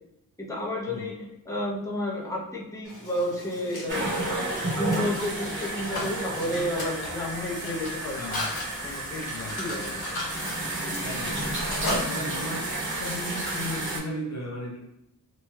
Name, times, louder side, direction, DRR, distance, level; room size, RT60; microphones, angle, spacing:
voice 1, 0.4-4.0 4.7-8.5 8.8-9.3 9.6-9.9, left 1 dB, 10° left, -3 dB, 0.7 m, -31 dB
Mechanisms, 2.8-12.6, left 1 dB, 70° left, 1.1 m, -37 dB
sound 1, 3.9-14.0, right 2 dB, 30° right, 0.9 m, -32 dB
voice 2, 8.2-8.5 9.3-10.3 11.0-11.7 12.1-14.8, left 1 dB, 45° left, -1 dB, 0.5 m, -36 dB
3.0 x 2.2 x 2.8 m, 0.87 s
wide cardioid pair, 90°, 38 cm